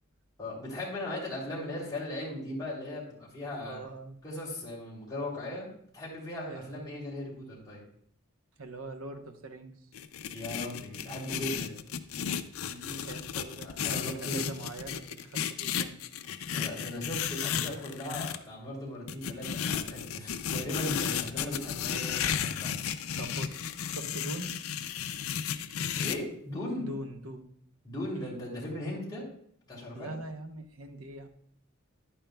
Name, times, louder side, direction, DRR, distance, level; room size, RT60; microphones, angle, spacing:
voice 1, 0.4-3.8 4.2-5.7 5.9-7.8 10.3-11.8 13.6-14.5 16.5-22.7 25.9-26.9 27.8-29.2 29.7-30.1, left 1 dB, 20° left, -6 dB, 3.0 m, -38 dB
voice 2, 3.6-4.2 6.5-6.9 8.6-9.8 12.6-16.0 23.2-24.5 26.8-27.5 28.1-28.4 29.9-31.3, right 2 dB, 80° right, 7 dB, 0.9 m, -43 dB
sound 1, 9.9-18.4 19.1-26.2, left 8 dB, 80° left, 0.5 m, -34 dB
10.5 x 9.0 x 2.3 m, 0.65 s
head